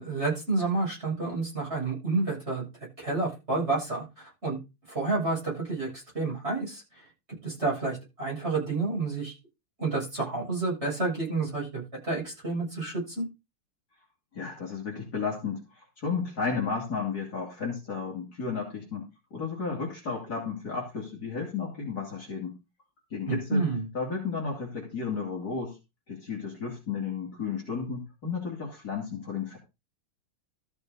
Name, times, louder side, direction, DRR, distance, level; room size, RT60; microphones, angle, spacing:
voice 1, 0.0-2.6 3.0-4.6 4.9-6.8 7.4-9.3 9.8-13.2 23.3-23.8, right 3 dB, 30° right, -5 dB, 8.2 m, -29 dB
voice 2, 14.3-22.6 23.1-23.6 23.9-25.8 26.1-29.6, left 5 dB, 45° left, -2 dB, 2.9 m, -33 dB
14.0 x 7.0 x 4.0 m, 0.27 s
omnidirectional pair, 2.3 m